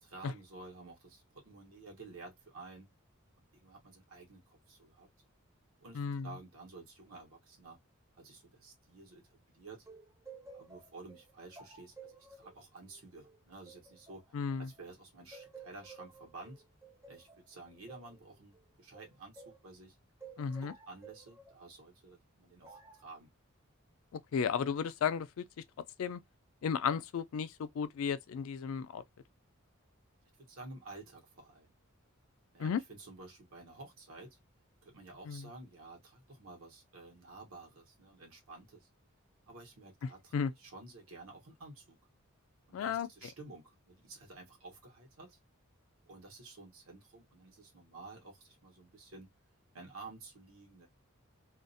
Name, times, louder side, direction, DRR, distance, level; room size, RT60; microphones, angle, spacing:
voice 1, 0.0-2.9 3.5-5.1 5.8-7.8 8.2-9.9 10.5-14.2 14.6-16.6 17.1-20.0 20.3-23.3 30.4-31.7 32.5-34.4 34.8-38.9 39.5-42.0 42.7-45.4 46.1-49.3 49.7-50.9, right 3 dB, 80° right, 1.0 m, -52 dB
voice 2, 5.9-6.3 14.3-14.7 20.4-20.7 24.1-25.4 26.0-26.2 26.6-29.0 32.6-32.8 35.3-35.5 40.3-40.5 42.7-43.1, left 6 dB, 70° left, 0.3 m, -34 dB
sound 1, 9.9-14.9 15.3-19.7 20.2-21.6 22.6-23.1, right 4 dB, 15° right, 0.4 m, -54 dB
2.4 x 2.0 x 2.5 m
head